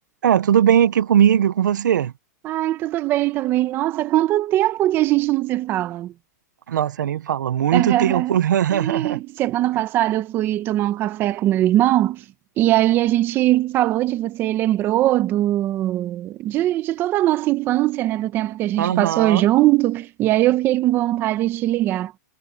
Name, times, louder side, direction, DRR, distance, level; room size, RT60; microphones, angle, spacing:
voice 1, 0.2-2.1 6.7-9.2 18.8-19.5, right 9 dB, 90° right, 0.8 m, -19 dB
voice 2, 2.4-6.1 7.7-8.4 8.7-12.2 12.6-22.1, right 14 dB, 20° right, 0.9 m, -21 dB
hypercardioid pair, 165°, 10 cm